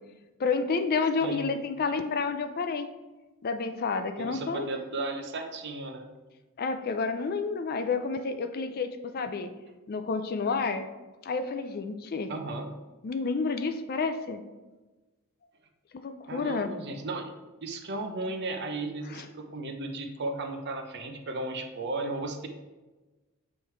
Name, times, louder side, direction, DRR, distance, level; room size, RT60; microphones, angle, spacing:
voice 1, 0.4-2.9 3.4-4.7 6.6-9.5 9.9-10.9 11.2-12.3 13.0-14.4 15.9-16.7 19.1-19.2, left 4 dB, 40° left, 8 dB, 0.4 m, -30 dB
voice 2, 1.2-1.6 4.2-6.1 12.3-12.7 16.3-17.3 17.6-22.5, right 2 dB, 50° right, 4 dB, 0.7 m, -35 dB
7.3 x 3.2 x 4.4 m, 1.2 s
head